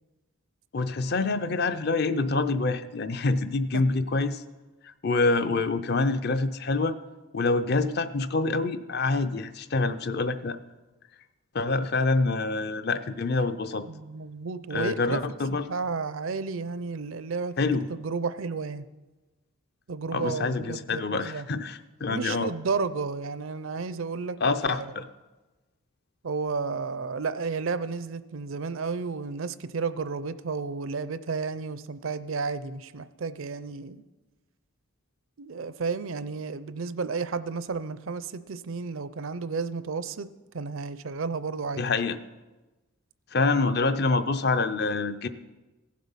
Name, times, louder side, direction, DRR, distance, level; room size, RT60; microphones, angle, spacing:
voice 1, 0.7-4.4 4.8-7.0 7.3-10.6 11.5-13.8 14.7-15.7 17.6-17.9 20.1-22.5 24.4-25.0 41.8-42.2 43.3-45.3, left 3 dB, 45° left, 11 dB, 0.5 m, -26 dB
voice 2, 13.9-15.2 15.7-18.9 19.9-21.5 22.1-24.4 24.7-24.9 26.2-34.0 35.4-40.3 40.5-41.8, right 4 dB, 65° right, 14 dB, 0.5 m, -32 dB
15.5 x 7.5 x 5.6 m, 1.2 s
head